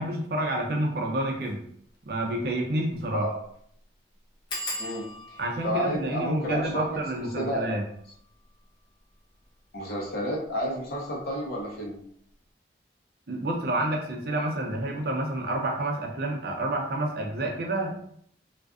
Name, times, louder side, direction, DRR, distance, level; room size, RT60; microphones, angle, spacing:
voice 1, 0.0-1.6 2.0-3.3 5.4-7.8 13.3-18.0, right 1 dB, 55° right, 1 dB, 0.5 m, -29 dB
sound 1, 1.3-1.5 1.9-2.0 2.3-2.4 2.9-3.2 3.4-3.5 4.5-9.8 10.5-11.0 11.3-11.6 11.9-12.0, left 1 dB, 25° left, 0.4 m, -41 dB
voice 2, 4.8-5.4 5.6-7.0 7.4-7.7 9.7-12.0, equal, 55° left, -3 dB, 0.7 m, -31 dB
2.4 x 2.4 x 2.3 m, 0.66 s
head